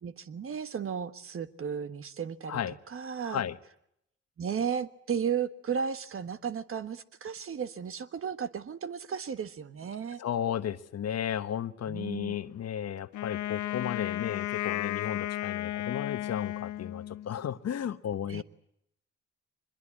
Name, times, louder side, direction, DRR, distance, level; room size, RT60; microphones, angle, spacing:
voice 1, 0.0-3.4 4.4-10.2 11.9-12.4 18.3-18.4, right 7 dB, 45° right, 1.4 m, -34 dB
voice 2, 3.2-3.6 10.2-18.4, left 9 dB, 55° left, 1.2 m, -34 dB
Wind instrument woodwind instrument, 13.1-17.3, left 14 dB, 75° left, 0.9 m, -34 dB
24.0 x 21.5 x 8.6 m
cardioid pair, 90°, 30 cm